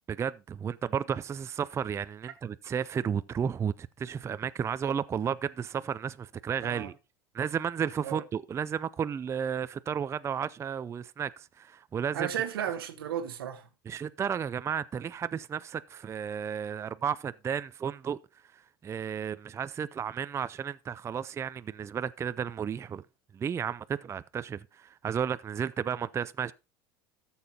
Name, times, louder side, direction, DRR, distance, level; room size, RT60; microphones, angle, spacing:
voice 1, 0.1-6.9 7.3-12.3 13.9-18.2 18.5-23.0 23.3-26.5, right 7 dB, 25° right, 0.4 m, -33 dB
voice 2, 6.6-6.9 8.0-8.2 12.1-13.7, right 9 dB, 90° right, 1.1 m, -34 dB
13.0 x 7.0 x 2.8 m
hypercardioid pair, 90°, 12 cm